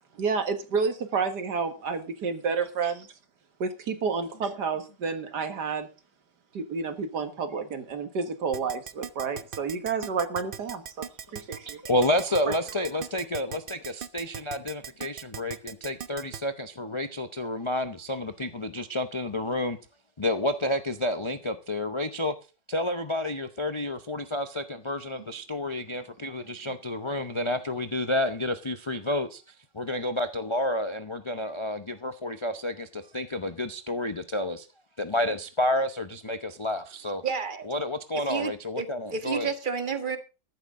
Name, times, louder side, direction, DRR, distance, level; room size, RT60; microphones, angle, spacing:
voice 1, 0.2-3.1 3.6-5.9 6.5-11.0 11.3-11.8 12.5-12.6, right 5 dB, 65° right, 2.1 m, -30 dB
Keyboard (musical), 8.5-16.4, right 8 dB, 90° right, 0.4 m, -38 dB
voice 2, 11.8-19.8 20.2-22.3 22.7-34.7 35.0-37.2 37.7-39.5, left 1 dB, 45° left, 0.3 m, -30 dB
voice 3, 37.2-37.7 38.3-40.2, right 6 dB, 30° right, 1.4 m, -31 dB
14.0 x 11.5 x 3.7 m
omnidirectional pair, 1.9 m